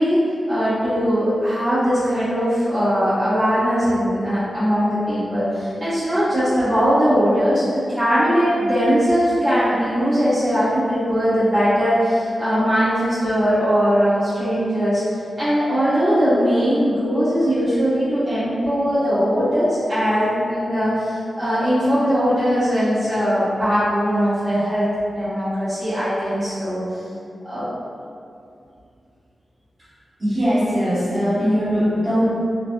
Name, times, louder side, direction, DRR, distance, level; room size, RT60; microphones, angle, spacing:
voice 1, 0.0-7.6 7.9-15.0 15.4-24.8 25.1-26.8 27.4-27.7, equal, 30° right, -15 dB, 0.9 m, -20 dB
voice 2, 30.2-32.4, equal, 45° right, -12 dB, 1.1 m, -20 dB
2.6 x 2.2 x 2.2 m, 2.4 s
wide cardioid pair, 75°, 0 cm